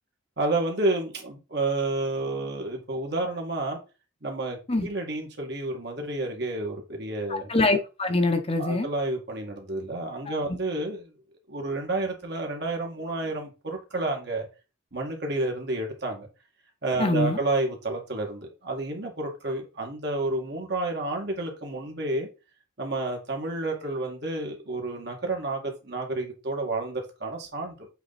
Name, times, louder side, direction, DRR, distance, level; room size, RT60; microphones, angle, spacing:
voice 1, 0.4-3.8 4.2-7.5 8.6-11.1 11.5-14.5 14.9-16.3 16.8-22.3 22.8-27.9, right 2 dB, 55° right, 2.2 m, -30 dB
voice 2, 7.3-8.9 10.3-10.4 17.0-17.4, left 2 dB, 30° left, 1.0 m, -24 dB
8.0 x 3.9 x 4.2 m
head